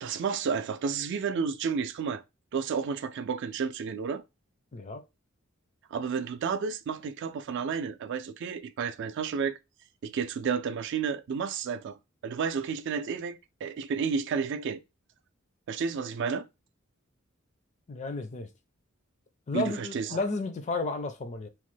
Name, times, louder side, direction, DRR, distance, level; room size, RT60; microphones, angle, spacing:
voice 1, 0.0-2.2 2.5-4.2 5.9-9.6 10.0-12.0 12.2-14.8 15.7-16.5 19.5-20.2, right 6 dB, 60° right, 0.3 m, -31 dB
voice 2, 4.7-5.0 17.9-18.5 19.5-21.5, left 3 dB, 35° left, 0.4 m, -32 dB
3.0 x 2.1 x 3.1 m
head